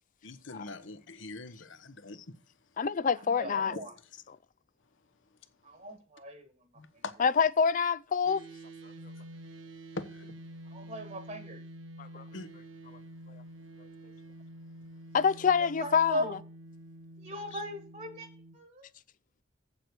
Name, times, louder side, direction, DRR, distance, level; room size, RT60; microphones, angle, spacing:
voice 1, 0.2-2.2 3.7-3.8 6.8-7.1 9.9-10.3 12.3-12.5, left 2 dB, 65° left, 1.1 m, -42 dB
voice 2, 2.8-3.8 7.2-8.4 12.0-12.2 15.1-16.2, left 6 dB, 40° left, 0.4 m, -26 dB
voice 3, 3.3-3.9 5.6-6.5 10.7-11.6 15.6-16.3 17.2-18.3 18.5-18.9, equal, 40° right, 1.6 m, -38 dB
sound 1, 8.2-18.6, right 1 dB, 65° right, 1.2 m, -48 dB
8.2 x 7.6 x 6.1 m
head